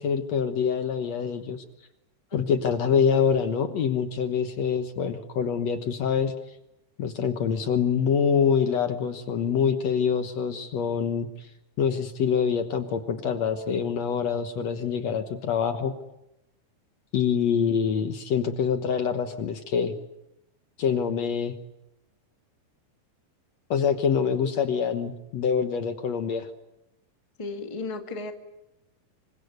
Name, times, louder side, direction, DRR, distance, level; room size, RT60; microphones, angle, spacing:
voice 1, 0.0-1.6 2.3-6.3 7.0-11.5 11.8-15.9 17.1-19.9 20.8-21.6 23.7-26.5, left 7 dB, 60° left, 8 dB, 2.2 m, -25 dB
voice 2, 27.4-28.3, left 3 dB, 15° left, 5 dB, 1.5 m, -34 dB
26.5 x 24.5 x 8.1 m, 0.88 s
omnidirectional pair, 3.8 m